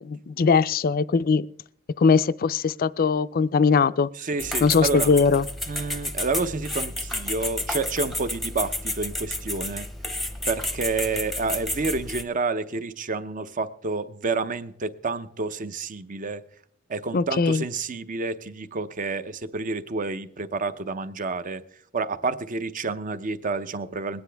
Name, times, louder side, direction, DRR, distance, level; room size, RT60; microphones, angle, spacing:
voice 1, 0.0-1.5 2.0-4.1 4.6-5.5 17.1-17.6, left 5 dB, 45° left, 0.4 m, -21 dB
voice 2, 4.2-5.1 5.7-9.9 10.5-16.4 16.9-21.6 21.9-24.2, right 3 dB, 40° right, 0.7 m, -29 dB
sound 1, 4.4-12.2, left 1 dB, ahead, 0.8 m, -31 dB
22.0 x 9.6 x 3.4 m
head